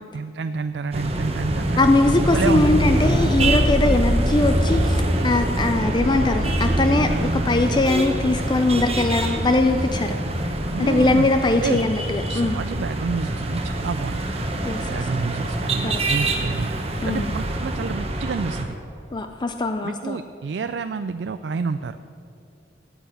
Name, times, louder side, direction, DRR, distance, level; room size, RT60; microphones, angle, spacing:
voice 1, 0.1-1.8 2.3-2.8 10.7-11.3 11.6-11.8 12.3-14.2 14.8-16.7 17.0-18.8 19.8-22.0, right 5 dB, 75° right, 10 dB, 0.4 m, -29 dB
sound 1, 0.9-18.6, right 1 dB, 35° right, 1.1 m, -24 dB
voice 2, 1.8-10.5 10.8-12.6 14.6-15.0 15.8-16.0 17.0-17.3 19.1-20.2, left 2 dB, 25° left, 7 dB, 0.4 m, -21 dB
10.0 x 9.1 x 8.0 m, 2.6 s
head